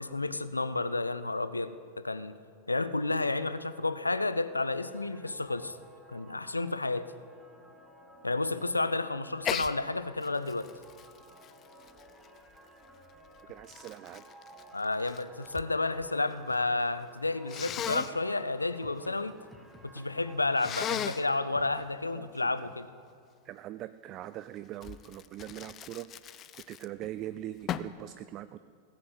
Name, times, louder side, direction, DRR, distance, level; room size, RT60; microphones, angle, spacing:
voice 1, 0.0-2.4 2.7-5.8 6.1-7.1 8.2-10.7 14.7-19.4 19.8-22.9, left 2 dB, 80° left, 13 dB, 0.5 m, -31 dB
sound 1, 4.5-21.9, right 1 dB, ahead, 1.5 m, -55 dB
Sneeze, 9.4-9.7 10.2-12.6 13.3-15.7 16.0-16.6 17.5-18.1 20.6-21.3 24.8-27.1 27.7-28.0, left 10 dB, 30° left, 0.5 m, -37 dB
voice 2, 13.5-14.2 22.1-22.7 23.4-26.1 26.3-28.6, right 13 dB, 35° right, 13 dB, 0.4 m, -42 dB
17.0 x 7.6 x 7.7 m, 2.3 s
figure-of-eight pair, 90°, 0 cm